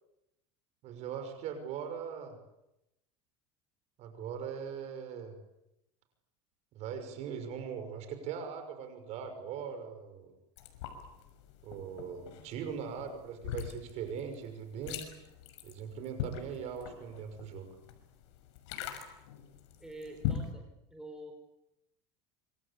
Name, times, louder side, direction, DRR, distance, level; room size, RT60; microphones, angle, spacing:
voice 1, 0.8-2.4 4.0-5.3 6.7-10.3 11.6-15.0 15.6-17.8, right 7 dB, 50° right, 7 dB, 5.8 m, -40 dB
sound 1, 10.6-20.5, left 9 dB, 85° left, 6.1 m, -41 dB
voice 2, 19.8-21.3, right 1 dB, 5° right, 3 dB, 4.7 m, -47 dB
26.5 x 26.5 x 8.5 m, 0.89 s
supercardioid pair, 140°, 15 cm